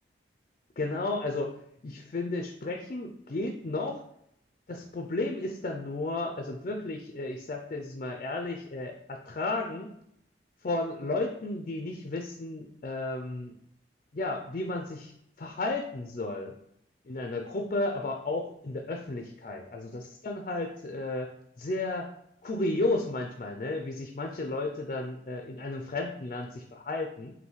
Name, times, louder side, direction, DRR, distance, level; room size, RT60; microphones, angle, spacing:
voice 1, 0.8-1.5 1.8-4.0 4.7-9.9 10.6-13.5 14.1-16.5 17.1-21.3 21.6-22.1 22.4-27.3, left 2 dB, 45° left, 3 dB, 0.4 m, -33 dB
5.4 x 2.6 x 3.1 m, 0.74 s
head